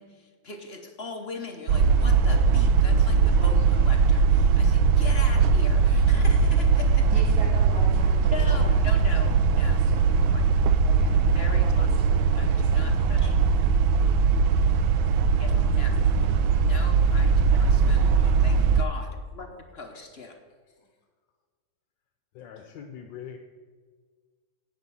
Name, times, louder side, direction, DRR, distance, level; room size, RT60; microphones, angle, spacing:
voice 1, 0.0-7.1 8.3-9.3 9.6-9.8 10.3-10.4 11.1-13.4 15.4-16.0 16.5-20.4, left 3 dB, 45° left, 4 dB, 0.8 m, -40 dB
sound 1, 1.7-18.8, right 5 dB, 85° right, 1.4 m, -20 dB
voice 2, 7.1-10.4 10.8-13.1, right 2 dB, 60° right, -2 dB, 2.1 m, -42 dB
voice 3, 17.6-18.3 22.4-23.4, left 8 dB, 75° left, 5 dB, 1.4 m, -44 dB
10.5 x 8.7 x 5.5 m, 1.5 s
omnidirectional pair, 2.1 m